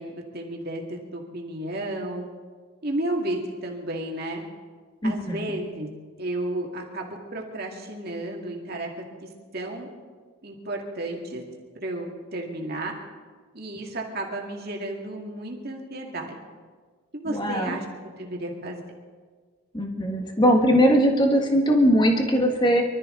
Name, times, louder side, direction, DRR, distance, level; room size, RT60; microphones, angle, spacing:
voice 1, 0.0-2.3 2.8-4.4 5.0-5.9 6.2-8.9 9.2-9.3 9.5-9.9 10.4-11.4 11.8-12.9 13.5-16.4 17.1-18.8, right 1 dB, 45° right, 0 dB, 2.2 m, -32 dB
voice 2, 5.0-5.6 17.3-17.8 19.7-22.8, equal, 20° left, 2 dB, 1.8 m, -20 dB
24.5 x 13.0 x 3.9 m, 1.5 s
head